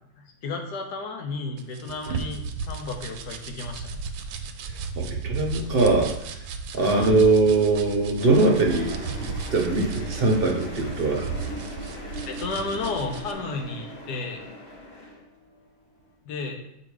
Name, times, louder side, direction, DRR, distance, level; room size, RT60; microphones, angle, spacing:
voice 1, 0.2-4.0 6.9-7.2 12.2-14.5 16.2-16.7, left 3 dB, 65° left, 3 dB, 1.3 m, -33 dB
sound 1, 1.6-13.3, right 5 dB, 80° right, 1.3 m, -34 dB
voice 2, 5.0-6.1 6.7-11.3, right 3 dB, 50° right, 0 dB, 0.7 m, -22 dB
sound 2, 8.2-15.6 15.9-16.1, equal, 40° left, 1.3 m, -39 dB
7.5 x 2.9 x 4.7 m, 0.80 s
omnidirectional pair, 2.0 m